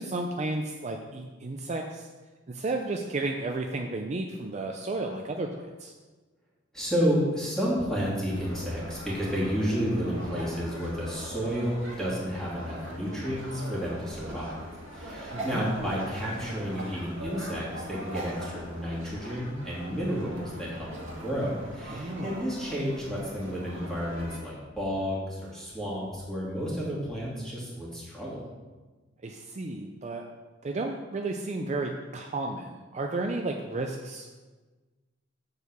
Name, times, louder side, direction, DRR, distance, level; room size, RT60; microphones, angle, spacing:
voice 1, 0.0-2.1 2.5-5.9 15.3-15.7 21.9-22.5 29.2-30.2 30.6-34.3, right 2 dB, 35° right, 3 dB, 0.5 m, -33 dB
voice 2, 6.7-14.6 14.9-28.4, equal, 5° left, -7 dB, 2.4 m, -31 dB
sound 1, 8.3-24.4, right 1 dB, 85° right, 1.8 m, -41 dB
6.7 x 4.6 x 6.8 m, 1.3 s
head